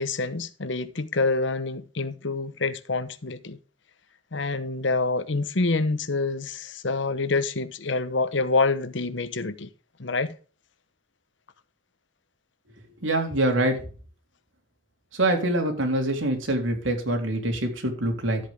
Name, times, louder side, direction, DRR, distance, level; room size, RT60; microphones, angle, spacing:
voice 1, 0.0-3.6 4.3-9.7 10.0-10.3, left 3 dB, 65° left, 1.0 m, -27 dB
voice 2, 13.0-13.8 15.1-18.4, right 1 dB, 80° right, 3.5 m, -24 dB
13.0 x 8.5 x 3.6 m
head